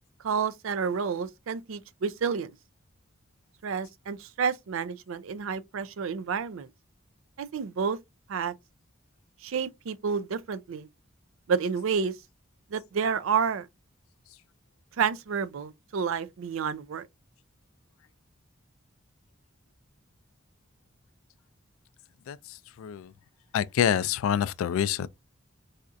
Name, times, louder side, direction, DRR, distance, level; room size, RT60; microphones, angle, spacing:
voice 1, 0.2-2.5 3.6-6.7 7.4-8.0 8.3-8.5 9.4-10.9 11.5-12.1 12.7-13.7 15.0-17.1, right 6 dB, 80° right, 0.4 m, -30 dB
voice 2, 22.3-23.1 23.5-25.1, left 9 dB, 85° left, 0.3 m, -27 dB
4.2 x 2.4 x 2.5 m
head